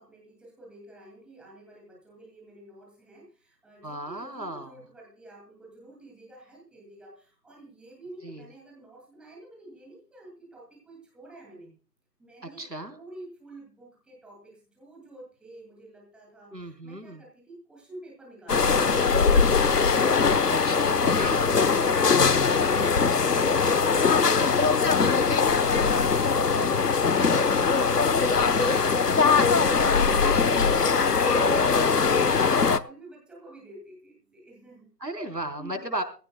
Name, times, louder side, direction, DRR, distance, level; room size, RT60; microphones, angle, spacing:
voice 1, 0.0-11.7 12.2-19.9 30.7-34.9 35.6-35.9, right 1 dB, ahead, -3 dB, 2.2 m, -49 dB
voice 2, 3.8-4.7 8.2-8.5 12.6-12.9 16.5-17.2 20.5-21.4 26.5-26.8 27.1-27.8 35.0-36.0, right 1 dB, 85° right, 7 dB, 4.1 m, -35 dB
sound 1, 18.5-32.8, left 5 dB, 70° left, 1.1 m, -21 dB
21.0 x 16.0 x 2.2 m, 0.38 s
figure-of-eight pair, 150°, 49 cm